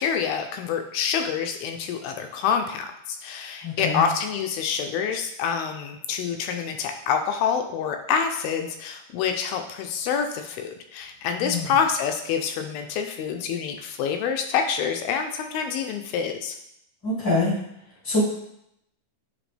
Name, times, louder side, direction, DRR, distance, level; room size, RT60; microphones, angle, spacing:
voice 1, 0.0-16.6, left 7 dB, 80° left, 5 dB, 2.2 m, -27 dB
voice 2, 3.6-4.0 11.4-11.7 17.0-17.6 18.0-18.2, left 2 dB, 25° left, -7 dB, 0.4 m, -24 dB
10.0 x 3.4 x 3.3 m, 0.77 s
omnidirectional pair, 4.5 m